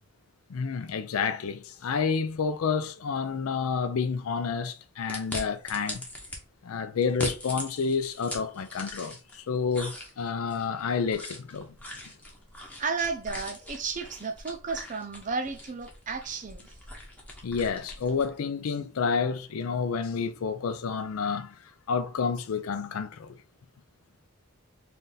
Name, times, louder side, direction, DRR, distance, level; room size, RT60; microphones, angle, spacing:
voice 1, 0.5-6.0 6.6-11.7 17.4-23.4, left 5 dB, 75° left, 0.4 m, -29 dB
sound 1, 5.1-6.4 7.0-9.4 9.7-18.3, left 1 dB, 5° left, 0.8 m, -41 dB
voice 2, 12.8-16.7, right 4 dB, 35° right, 0.5 m, -33 dB
3.3 x 2.6 x 3.9 m
head